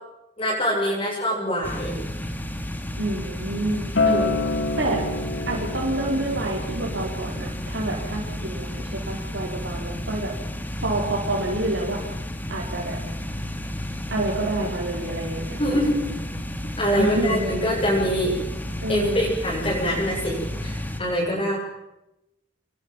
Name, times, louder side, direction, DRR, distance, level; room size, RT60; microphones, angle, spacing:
voice 1, 0.4-2.0 15.6-15.9 16.8-18.3 18.9-21.6, equal, 30° left, -5 dB, 6.9 m, -24 dB
sound 1, 1.6-21.0, equal, 10° left, 2.4 m, -32 dB
voice 2, 3.0-4.4 4.8-5.0 5.5-10.3 10.8-12.0 12.5-13.0 14.1-16.1 16.9-17.6 18.8-19.3, right 2 dB, 90° right, -3 dB, 5.2 m, -28 dB
Acoustic guitar, 4.0-9.2, left 3 dB, 85° left, 2.9 m, -29 dB
27.5 x 22.0 x 7.5 m, 0.92 s
head